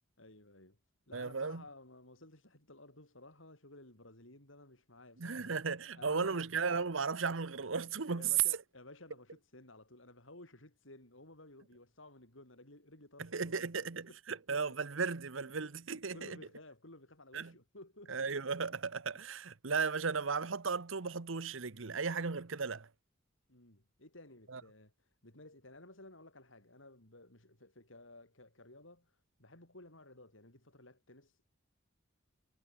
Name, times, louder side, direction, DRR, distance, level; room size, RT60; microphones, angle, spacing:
voice 1, 0.2-0.8 1.1-5.6 6.0-6.5 8.2-14.8 15.9-18.2 23.5-31.6, left 2 dB, 65° left, 7.5 m, -56 dB
voice 2, 1.1-1.6 5.2-8.3 13.2-16.4 17.3-17.5 18.1-22.9 24.5-24.6, right 5 dB, 70° right, 1.0 m, -36 dB
head